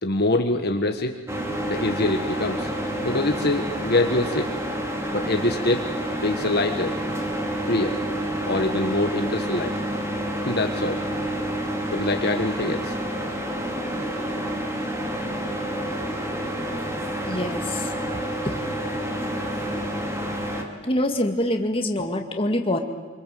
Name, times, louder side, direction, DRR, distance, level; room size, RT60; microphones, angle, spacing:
voice 1, 0.0-1.2 1.7-2.7 3.0-4.5 5.1-5.9 6.2-7.0 7.7-8.0 8.4-9.7 10.4-11.0 11.9-12.9, left 2 dB, 50° left, 5 dB, 1.5 m, -24 dB
sound 1, 1.3-20.6, equal, 15° right, 2.8 m, -29 dB
voice 2, 17.3-17.9 18.4-18.6 20.8-22.8, left 1 dB, 25° left, 4 dB, 2.0 m, -25 dB
26.0 x 24.5 x 7.7 m, 1.5 s
head